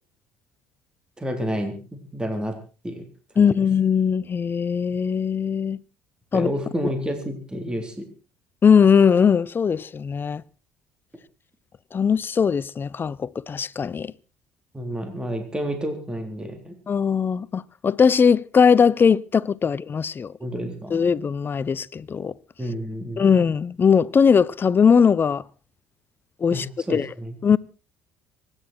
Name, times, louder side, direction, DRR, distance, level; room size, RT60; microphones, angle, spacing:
voice 1, 1.2-2.6 2.8-3.1 3.3-3.5 6.3-8.1 14.7-16.8 20.4-21.0 22.6-23.3 26.5-27.4, equal, 15° right, 3.7 m, -30 dB
voice 2, 3.4-5.8 6.3-6.5 8.6-10.4 11.9-14.1 16.9-20.3 20.9-22.3 23.2-25.4 26.4-26.7 26.9-27.1 27.4-27.6, left 6 dB, 35° left, 0.7 m, -19 dB
24.5 x 11.0 x 4.4 m
hypercardioid pair, 60°, 6 cm